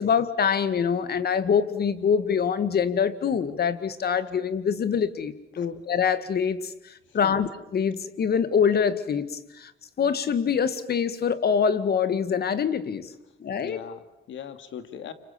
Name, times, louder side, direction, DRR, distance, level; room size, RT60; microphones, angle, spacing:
voice 1, 0.0-9.7 10.0-13.1 13.4-13.8, left 7 dB, 55° left, 12 dB, 2.0 m, -25 dB
voice 2, 13.6-15.1, left 9 dB, 75° left, 10 dB, 2.3 m, -40 dB
29.5 x 26.0 x 7.3 m, 0.88 s
cardioid pair, 90°, 20 cm